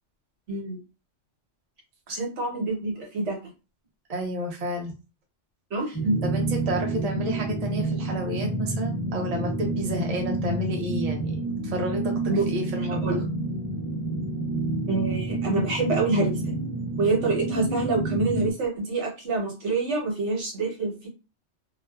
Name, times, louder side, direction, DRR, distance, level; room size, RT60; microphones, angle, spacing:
voice 1, 0.5-0.8 2.1-3.4 5.7-6.1 12.3-13.2 14.9-16.5 17.0-21.1, right 3 dB, 70° right, -1 dB, 1.1 m, -27 dB
voice 2, 4.1-4.9 6.2-12.2 12.5-13.0, equal, 40° right, 0 dB, 0.6 m, -30 dB
sound 1, 5.9-18.5, right 2 dB, 20° left, 0.9 m, -29 dB
2.5 x 2.3 x 2.2 m, 0.30 s
omnidirectional pair, 1.2 m